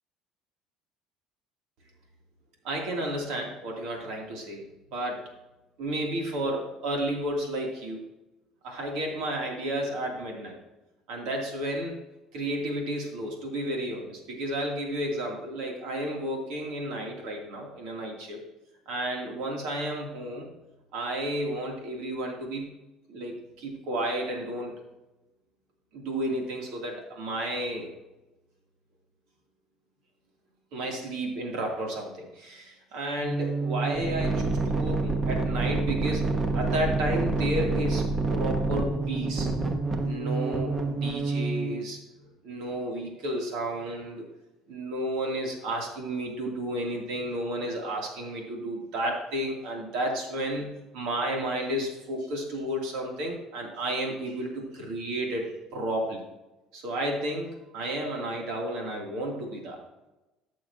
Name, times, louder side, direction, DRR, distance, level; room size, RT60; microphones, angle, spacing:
voice 1, 2.6-4.6 4.9-5.2 5.8-8.0 8.6-10.6 11.1-12.0 12.3-18.4 18.9-20.5 20.9-22.7 23.1-24.8 25.9-27.9 30.7-36.3 36.5-38.1 38.3-39.5 40.0-42.0 42.4-44.2 44.7-56.2 56.7-59.8, right 1 dB, 75° right, 0 dB, 2.8 m, -32 dB
sound 1, 33.2-41.8, right 3 dB, 25° right, 1.0 m, -28 dB
14.5 x 6.5 x 2.9 m, 1.0 s
cardioid pair, 125°, 0 cm